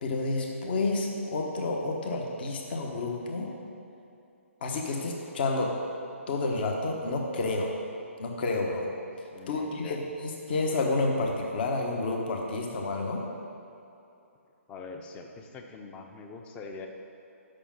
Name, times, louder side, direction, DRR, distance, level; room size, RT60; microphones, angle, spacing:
voice 1, 0.0-3.5 4.6-5.7 6.3-7.7 8.2-8.9 9.5-10.0 10.5-13.2, left 3 dB, 45° left, 1 dB, 1.2 m, -29 dB
voice 2, 9.3-10.1 14.7-16.9, left 4 dB, 15° left, 4 dB, 0.7 m, -43 dB
6.8 x 6.3 x 7.5 m, 2.7 s
figure-of-eight pair, 135°, 8 cm